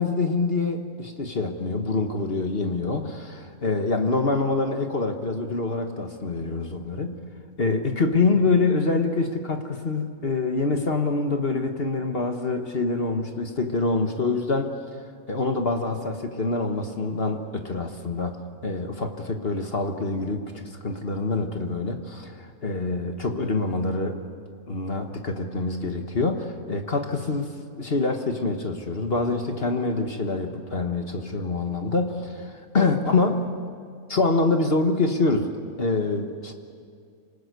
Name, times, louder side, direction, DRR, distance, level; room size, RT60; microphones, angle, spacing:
voice 1, 0.0-7.2 7.6-14.7 15.3-24.2 24.7-27.5 27.8-33.6 34.1-35.5 35.8-36.5, left 3 dB, 45° left, 5 dB, 1.6 m, -25 dB
27.5 x 19.5 x 8.2 m, 2.2 s
omnidirectional pair, 1.5 m